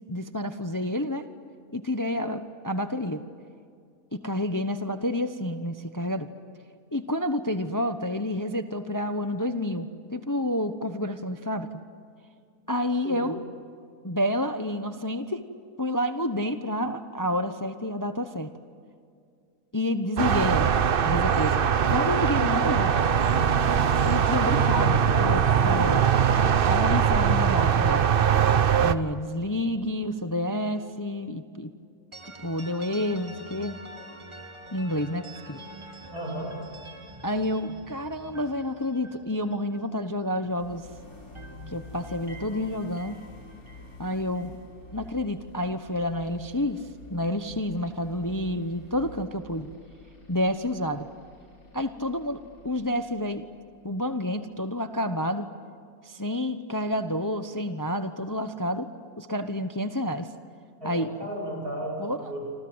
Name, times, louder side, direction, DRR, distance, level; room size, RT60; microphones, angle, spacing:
voice 1, 0.1-1.3 1.7-3.2 4.1-6.3 6.9-11.7 12.7-13.4 14.0-15.4 15.8-18.5 19.7-20.7 21.0-22.9 24.0-26.1 26.5-28.1 28.8-31.7 32.4-33.8 34.7-35.6 37.2-40.9 41.7-43.2 44.0-44.6 44.9-46.8 47.1-49.7 50.3-51.1 51.7-52.4 52.6-53.5 53.8-55.5 56.0-58.9 59.2-60.3 60.8-61.1 62.0-62.3, left 1 dB, 15° left, 8 dB, 0.8 m, -29 dB
sound 1, 20.2-28.9, right 7 dB, 45° right, 0.8 m, -21 dB
sound 2, 32.1-40.8 41.1-45.2, right 1 dB, 20° right, 2.1 m, -47 dB
voice 2, 36.1-36.6 60.8-62.6, right 1 dB, 75° right, 0 dB, 8.5 m, -34 dB
sound 3, 40.5-54.3, left 2 dB, 65° left, 5.0 m, -48 dB
28.0 x 26.5 x 8.0 m, 2.3 s
omnidirectional pair, 1.6 m